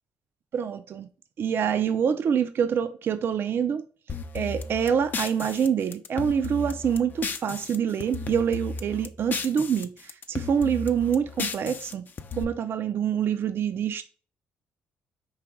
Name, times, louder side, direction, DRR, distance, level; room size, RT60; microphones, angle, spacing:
voice 1, 0.5-1.1 1.4-3.8 4.3-12.0 12.4-14.0, right 7 dB, 55° right, 0.4 m, -26 dB
sound 1, 4.1-9.8 10.1-12.4, left 4 dB, 40° left, 0.5 m, -34 dB
4.7 x 3.0 x 3.5 m
supercardioid pair, 70°, 5 cm